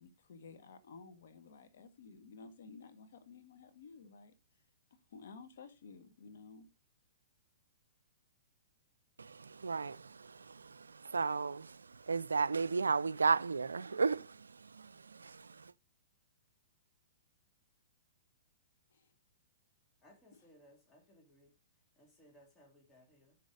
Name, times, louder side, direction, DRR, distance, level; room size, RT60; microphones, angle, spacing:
voice 1, 0.0-4.3 5.1-6.7 18.9-19.1, left 4 dB, 65° left, 1.7 m, -54 dB
voice 2, 9.2-15.7, right 4 dB, 90° right, 0.4 m, -35 dB
voice 3, 20.0-23.4, equal, 15° left, 2.5 m, -64 dB
7.0 x 6.2 x 5.0 m
hypercardioid pair, 120°, 0 cm